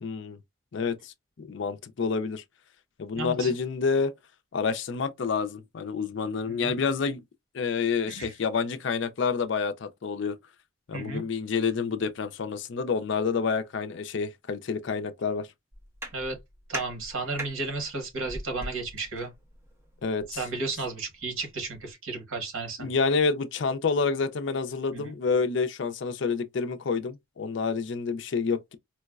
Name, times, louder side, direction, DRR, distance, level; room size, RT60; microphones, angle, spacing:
voice 1, 0.0-0.4 0.7-2.4 3.0-4.1 4.5-7.2 7.5-10.4 10.9-15.5 20.0-20.4 22.8-28.8, left 5 dB, 55° left, 0.4 m, -28 dB
voice 2, 3.1-3.5 6.4-6.7 8.1-8.3 10.9-11.2 16.1-16.4 16.7-19.3 20.3-22.9 24.9-25.1, right 3 dB, 80° right, 1.3 m, -33 dB
sound 1, 15.7-21.9, right 1 dB, 10° right, 0.7 m, -43 dB
4.5 x 2.1 x 2.3 m
head